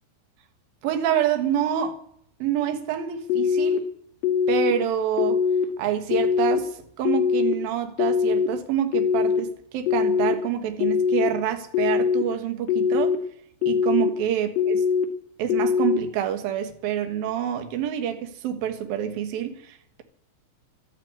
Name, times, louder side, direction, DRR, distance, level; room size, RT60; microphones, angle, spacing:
voice 1, 0.8-2.0 2.4-3.8 4.5-5.4 5.8-13.2 13.6-14.8 15.4-20.0, right 9 dB, 65° right, 2.7 m, -27 dB
sound 1, 3.3-3.8 4.2-4.7 5.2-5.6 6.1-6.6 7.0-7.5 8.0-8.5 8.9-9.4 9.9-10.3 10.8-11.3 11.7-12.2 12.7-13.2 13.6-14.1 14.6-15.1 15.5-16.0, left 6 dB, 65° left, 1.7 m, -22 dB
12.5 x 11.5 x 8.6 m
omnidirectional pair, 5.8 m